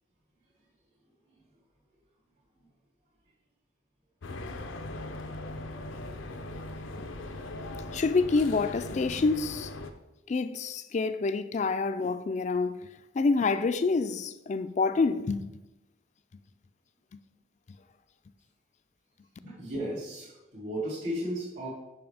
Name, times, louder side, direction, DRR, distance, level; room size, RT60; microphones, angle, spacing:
sound 1, 4.2-9.9, left 2 dB, 90° left, 0.6 m, -39 dB
voice 1, 7.9-9.7 10.3-12.9 13.1-15.5, left 4 dB, 35° left, 0.3 m, -27 dB
voice 2, 19.4-21.7, equal, 60° right, 2.5 m, -34 dB
7.0 x 5.6 x 3.4 m
head